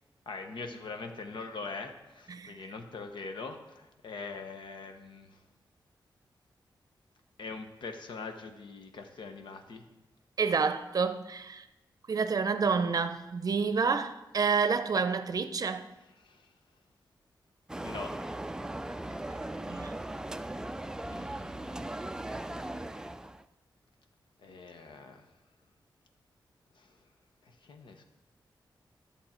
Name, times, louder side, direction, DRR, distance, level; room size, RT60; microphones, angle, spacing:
voice 1, 0.3-5.4 7.4-9.9 16.1-16.5 17.8-18.1 21.1-21.9 24.4-25.3 26.7-27.0 27.4-28.0, left 4 dB, 80° left, 1.1 m, -43 dB
voice 2, 10.4-11.7 12.1-15.9 19.5-19.9, right 5 dB, 50° right, 0.6 m, -29 dB
sound 1, 17.7-23.4, right 1 dB, 10° right, 0.3 m, -38 dB
11.5 x 7.2 x 4.4 m
wide cardioid pair, 120°, 8 cm